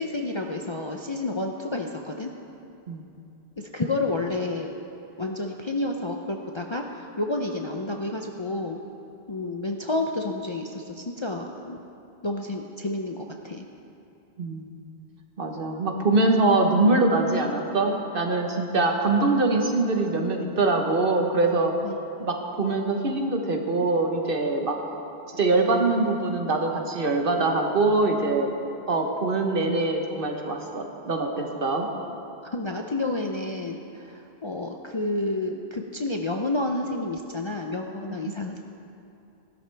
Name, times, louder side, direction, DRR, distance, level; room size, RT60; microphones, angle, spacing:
voice 1, 0.0-2.3 3.6-4.7 5.2-8.8 9.3-11.8 12.2-13.6 21.8-21.9 32.4-38.6, left 2 dB, 35° left, 2 dB, 0.5 m, -30 dB
voice 2, 15.4-21.7 22.2-24.8 25.3-28.5 28.9-31.9 38.1-38.2, right 2 dB, 55° right, 2 dB, 1.3 m, -23 dB
16.5 x 12.5 x 3.4 m, 2.7 s
omnidirectional pair, 1.1 m